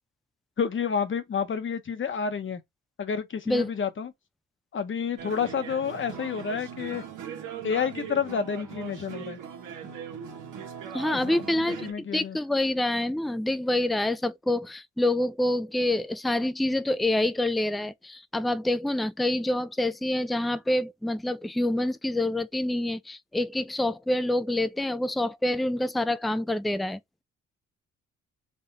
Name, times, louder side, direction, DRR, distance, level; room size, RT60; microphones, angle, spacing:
voice 1, 0.6-2.6 3.0-4.1 4.7-7.0 7.6-9.4 11.1-11.4 11.8-12.4, left 6 dB, 40° left, 1.0 m, -29 dB
sound 1, 5.2-11.9, right 8 dB, 80° right, 1.5 m, -39 dB
voice 2, 10.9-27.0, left 1 dB, ahead, 0.4 m, -27 dB
3.7 x 3.4 x 4.0 m
cardioid pair, 90°, 30 cm